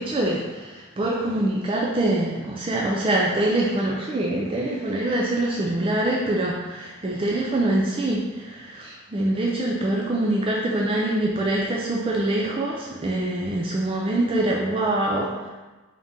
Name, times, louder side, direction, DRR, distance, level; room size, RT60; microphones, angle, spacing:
voice 1, 0.0-15.5, right 1 dB, 25° right, -3 dB, 0.3 m, -24 dB
3.6 x 2.7 x 3.7 m, 1.2 s
head